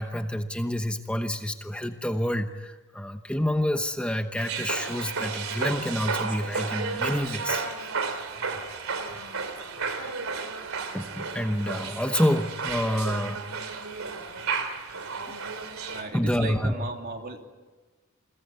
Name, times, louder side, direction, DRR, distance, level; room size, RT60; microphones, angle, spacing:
voice 1, 0.0-7.6 10.9-13.4 16.1-16.8, equal, 5° left, 7 dB, 1.0 m, -28 dB
sound 1, 4.4-16.0, right 4 dB, 85° right, 3.0 m, -32 dB
voice 2, 15.9-17.4, right 3 dB, 45° right, 3 dB, 3.1 m, -36 dB
29.5 x 22.0 x 8.4 m, 1.2 s
head